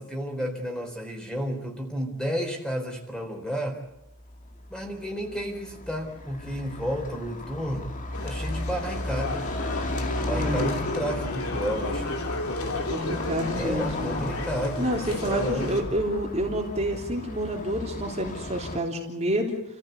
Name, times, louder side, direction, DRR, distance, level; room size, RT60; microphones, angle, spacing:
voice 1, 0.0-3.8 4.7-7.9 8.2-9.5 10.2-12.1 13.5-15.8, equal, 5° left, 2 dB, 4.2 m, -32 dB
Car passing by / Traffic noise roadway noise, 4.1-18.8, left 1 dB, 35° left, 2.4 m, -35 dB
sound 1, 8.1-15.8, left 2 dB, 80° left, 3.1 m, -33 dB
voice 2, 10.2-10.8 12.9-14.2 14.8-19.6, right 1 dB, 30° right, 0 dB, 3.3 m, -29 dB
29.5 x 15.0 x 8.3 m, 0.86 s
head